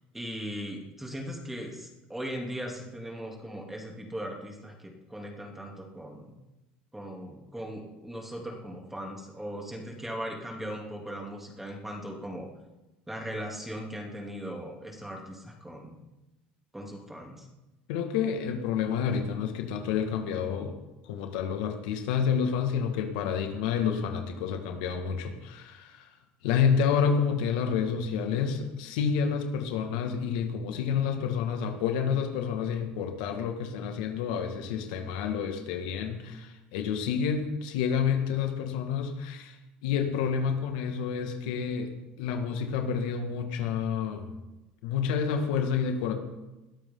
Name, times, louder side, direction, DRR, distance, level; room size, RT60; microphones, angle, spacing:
voice 1, 0.1-6.4 6.9-12.5 13.1-16.0 16.7-17.5, equal, 5° right, 0 dB, 3.2 m, -38 dB
voice 2, 17.9-20.7 21.1-26.1 26.4-39.6 39.8-41.9 42.2-44.3 44.8-46.1, left 7 dB, 85° left, 4 dB, 2.1 m, -29 dB
21.0 x 13.0 x 4.0 m, 1.0 s
supercardioid pair, 120°, 4 cm